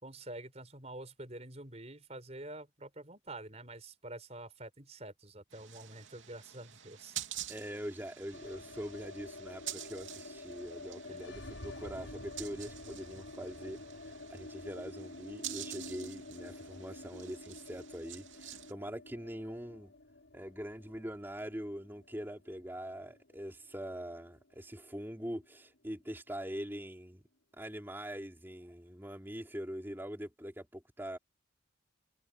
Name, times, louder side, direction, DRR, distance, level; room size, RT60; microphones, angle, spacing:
voice 1, 0.0-7.2 11.1-11.2, right 2 dB, 35° right, 4.8 m, -47 dB
sound 1, 5.5-18.7, right 11 dB, 90° right, 2.9 m, -48 dB
voice 2, 7.5-19.9 20.3-27.2 27.6-31.2, equal, 10° right, 3.4 m, -43 dB
sound 2, 8.3-24.4 24.7-24.8 25.1-25.8, left 2 dB, 80° left, 5.9 m, -49 dB
head